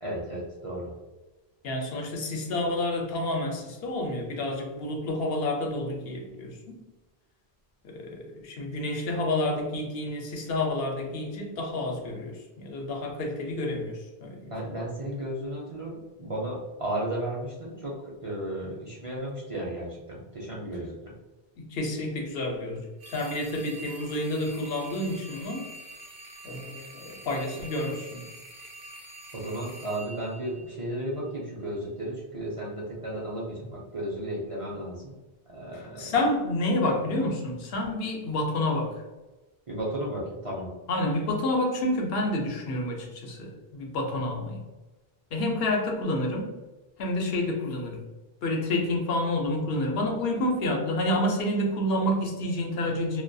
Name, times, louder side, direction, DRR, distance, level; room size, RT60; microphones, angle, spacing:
voice 1, 0.0-0.9 14.5-21.1 29.3-35.1 35.5-36.2 39.7-40.7, right 1 dB, 45° right, -5 dB, 0.4 m, -34 dB
voice 2, 1.6-6.8 7.8-14.5 21.6-25.7 26.4-28.2 35.7-39.0 40.9-44.6 45.3-46.5 47.0-48.0 48.4-53.2, left 1 dB, 75° left, 1 dB, 0.8 m, -29 dB
sound 1, 23.0-31.2, right 2 dB, 85° right, 0.8 m, -45 dB
2.2 x 2.2 x 2.5 m, 1.1 s
omnidirectional pair, 1.0 m